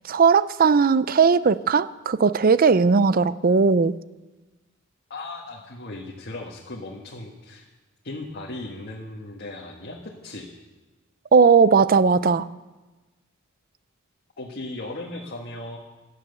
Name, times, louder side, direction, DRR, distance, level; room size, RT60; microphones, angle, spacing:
voice 1, 0.1-3.9 11.3-12.5, right 5 dB, 45° right, 16 dB, 0.5 m, -18 dB
voice 2, 5.1-7.7 8.0-10.5 14.4-15.8, left 2 dB, 50° left, -2 dB, 1.7 m, -37 dB
17.0 x 12.0 x 6.8 m, 1.2 s
head